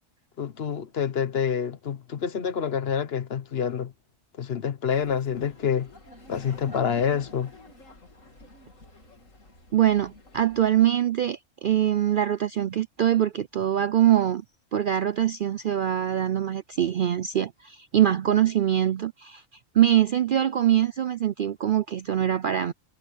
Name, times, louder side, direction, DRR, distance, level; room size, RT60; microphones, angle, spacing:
voice 1, 0.4-3.9 4.4-5.9 6.3-7.5, left 7 dB, 55° left, 1.0 m, -27 dB
Laughter, 4.9-10.7, left 1 dB, 80° left, 3.7 m, -48 dB
voice 2, 9.7-14.4 14.7-19.4 19.7-22.7, right 11 dB, 60° right, 0.5 m, -23 dB
omnidirectional pair, 1.3 m